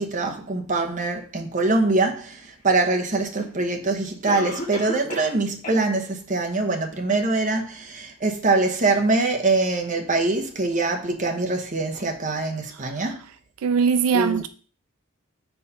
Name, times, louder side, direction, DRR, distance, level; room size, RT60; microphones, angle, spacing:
voice 1, 0.0-13.2 14.1-14.4, right 3 dB, 35° right, 1.0 m, -23 dB
Cough, 3.1-3.2 4.2-5.4 5.6-5.8 6.3-6.4 7.0-7.1, left 2 dB, 35° left, 1.1 m, -33 dB
voice 2, 12.7-13.2 13.6-14.5, right 6 dB, 85° right, 0.4 m, -22 dB
4.7 x 4.2 x 5.4 m
head